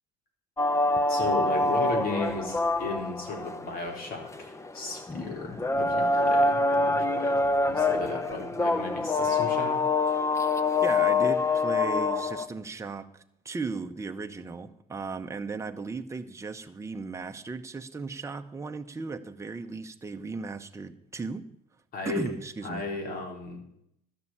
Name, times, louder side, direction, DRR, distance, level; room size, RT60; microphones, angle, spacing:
sound 1, 0.6-12.5, left 3 dB, 15° left, 0.7 m, -26 dB
voice 1, 1.1-9.8 21.9-22.3 22.6-23.6, left 3 dB, 60° left, 2 dB, 3.9 m, -35 dB
voice 2, 10.8-21.5 22.0-22.8, right 4 dB, 15° right, 6 dB, 1.0 m, -36 dB
12.5 x 6.8 x 9.9 m, 0.74 s
cardioid pair, 110°, 17 cm